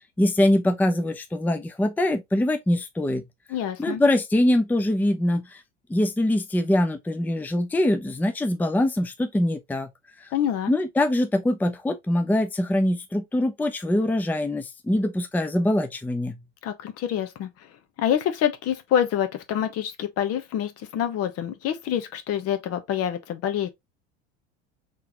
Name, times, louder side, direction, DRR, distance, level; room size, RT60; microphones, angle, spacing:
voice 1, 0.2-3.2 3.8-5.5 5.9-9.9 10.7-16.3, left 1 dB, 5° left, 0.6 m, -23 dB
voice 2, 3.5-4.0 10.3-10.7 16.6-17.7 18.0-23.7, left 10 dB, 50° left, 1.0 m, -26 dB
3.8 x 3.3 x 2.8 m
hypercardioid pair, 90°, 31 cm